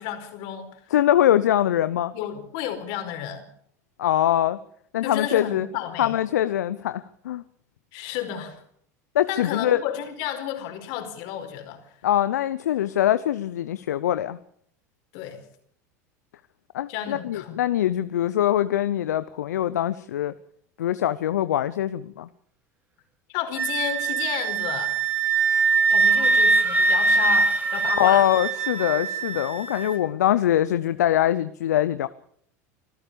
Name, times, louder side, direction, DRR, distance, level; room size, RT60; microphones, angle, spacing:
voice 1, 0.0-0.7 2.1-3.5 5.0-6.1 7.9-8.6 9.3-11.8 15.1-15.4 16.9-17.6 23.3-25.0 25.9-28.2, left 10 dB, 60° left, 7 dB, 4.8 m, -32 dB
voice 2, 0.9-2.1 4.0-4.6 4.9-5.7 6.0-7.4 9.1-9.8 12.0-14.4 16.7-20.3 20.8-22.3 27.9-32.1, left 12 dB, 80° left, 14 dB, 0.7 m, -23 dB
Wind instrument woodwind instrument, 23.6-30.0, right 4 dB, 20° right, 3.4 m, -22 dB
25.5 x 14.5 x 7.0 m, 0.64 s
hypercardioid pair, 90°, 9 cm